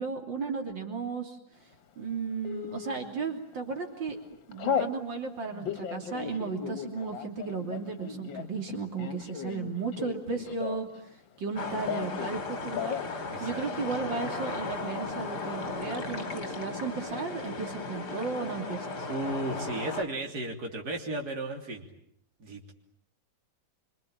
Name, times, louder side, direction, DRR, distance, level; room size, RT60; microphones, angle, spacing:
voice 1, 0.0-1.4 2.0-4.2 4.5-10.9 11.4-19.1, right 4 dB, 75° right, 3 dB, 3.8 m, -35 dB
Telephone, 2.4-3.0 3.5-3.8 4.1-5.0 5.5-11.0 11.3-12.4 12.7-13.1 13.4-13.5 13.8-14.4, left 7 dB, 85° left, 2.1 m, -35 dB
sound 1, 11.6-20.0, left 3 dB, 60° left, 3.2 m, -36 dB
voice 2, 13.3-13.6 19.1-21.9 22.4-22.7, right 2 dB, 55° right, 1 dB, 3.7 m, -34 dB
27.0 x 25.0 x 8.8 m, 0.67 s
omnidirectional pair, 2.0 m